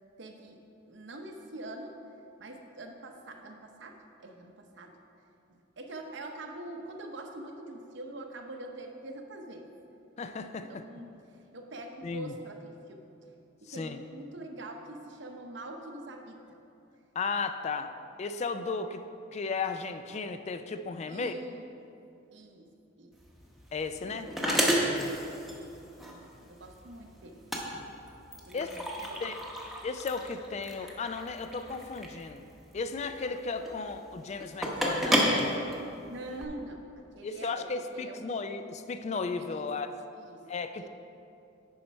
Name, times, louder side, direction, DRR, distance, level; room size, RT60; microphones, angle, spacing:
voice 1, 0.2-2.0 2.4-5.0 5.5-9.7 10.4-11.1 11.5-13.0 13.6-16.4 21.1-21.6 22.3-22.7 23.0-23.2 26.1-27.4 28.4-29.2 36.1-38.3 39.5-39.7 40.2-40.5 40.8-40.9, right 1 dB, 65° right, 3 dB, 0.8 m, -44 dB
voice 2, 10.2-10.9 12.0-12.3 13.7-14.0 17.2-17.9 18.2-19.0 19.3-21.3 23.7-24.9 28.5-28.7 29.2-29.4 29.8-32.5 32.7-35.5 37.2-39.9 40.5-40.9, left 4 dB, 35° left, 8 dB, 0.3 m, -35 dB
sound 1, 23.1-36.4, equal, ahead, 0.8 m, -32 dB
10.0 x 4.4 x 5.3 m, 2.7 s
head